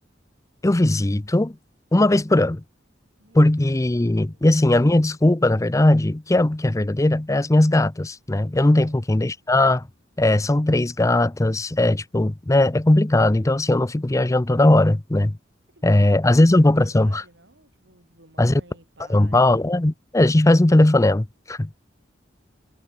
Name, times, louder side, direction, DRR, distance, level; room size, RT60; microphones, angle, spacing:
voice 1, 0.6-1.5 1.9-2.6 3.3-9.8 10.2-15.3 15.8-17.2 18.4-18.6 19.1-21.9, left 1 dB, 15° left, 0.6 m, -18 dB
voice 2, 3.2-3.6 3.9-4.5 8.8-9.0 15.7-19.5, right 2 dB, 65° right, 7.2 m, -52 dB
head